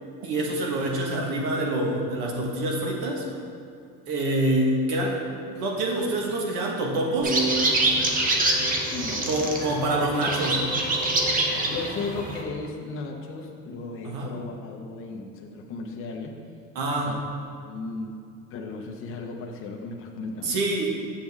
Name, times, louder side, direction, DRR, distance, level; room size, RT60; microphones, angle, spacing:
voice 1, 0.2-3.2 4.1-5.2 5.5-7.3 9.3-10.7 14.0-14.3 16.7-17.2 20.4-20.9, right 1 dB, 80° right, -1 dB, 1.5 m, -26 dB
sound 1, 7.2-12.4, right 2 dB, 25° right, 0.8 m, -25 dB
voice 2, 8.9-9.6 11.7-16.4 17.1-17.2 17.7-18.2 18.5-20.6, left 3 dB, 40° left, 1 dB, 0.7 m, -35 dB
7.4 x 7.3 x 3.6 m, 2.5 s
cardioid pair, 160°, 35 cm